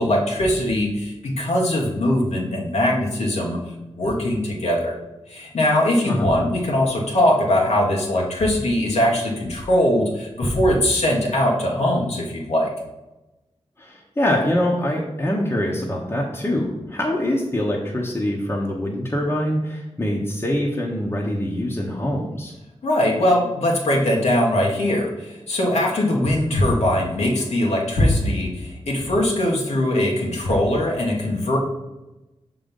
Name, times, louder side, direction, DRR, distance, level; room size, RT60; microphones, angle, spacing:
voice 1, 0.0-3.6 3.9-4.9 5.3-12.7 22.8-31.6, left 1 dB, 85° left, -2 dB, 1.4 m, -21 dB
voice 2, 13.8-22.5, left 1 dB, 25° left, -2 dB, 1.0 m, -24 dB
6.0 x 3.9 x 5.3 m, 1.0 s
wide cardioid pair, 80°, 11 cm